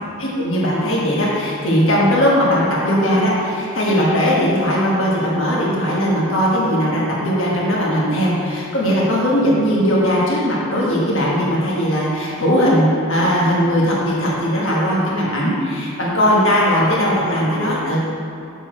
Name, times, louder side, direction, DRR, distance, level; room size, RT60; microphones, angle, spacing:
voice 1, 0.2-18.0, equal, 60° left, -5 dB, 1.4 m, -18 dB
7.1 x 6.3 x 4.4 m, 2.7 s
head